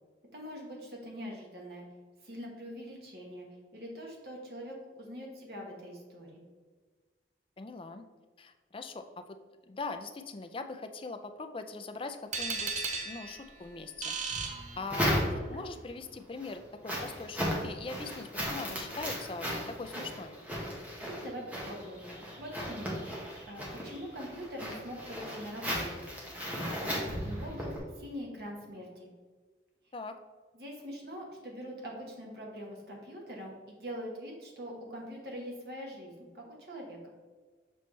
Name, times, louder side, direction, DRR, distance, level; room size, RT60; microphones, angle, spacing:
voice 1, 0.3-1.8 2.2-3.5 3.7-6.4 21.0-22.0 22.4-23.0 23.5-26.0 26.7-29.1 30.5-37.1, equal, 60° right, -1 dB, 1.4 m, -43 dB
voice 2, 7.6-8.0 8.4-9.4 9.7-14.2 14.8-20.4 29.9-30.2, left 3 dB, 30° left, 8 dB, 0.4 m, -41 dB
sound 1, 12.3-15.4, right 4 dB, 40° right, 0.5 m, -37 dB
sound 2, 14.3-15.7 16.2-27.8, equal, 10° right, 1.3 m, -36 dB
6.8 x 4.4 x 3.2 m, 1.4 s
head